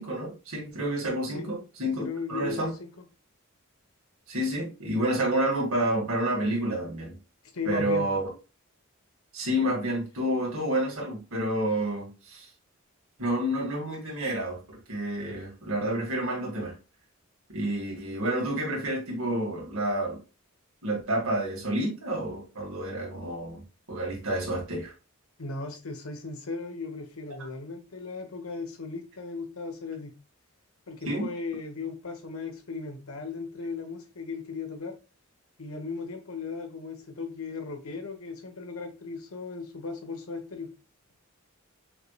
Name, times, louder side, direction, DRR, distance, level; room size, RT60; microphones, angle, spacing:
voice 1, 0.0-2.7 4.3-7.2 7.7-8.2 9.3-12.5 13.2-16.8 17.5-20.2 20.8-23.6 23.9-24.9 31.1-31.3, right 1 dB, 80° right, 2.0 m, -29 dB
voice 2, 2.0-2.9 7.5-8.1 25.4-30.2 30.9-34.9 35.6-40.7, left 4 dB, 85° left, 1.2 m, -37 dB
5.7 x 3.3 x 2.4 m
head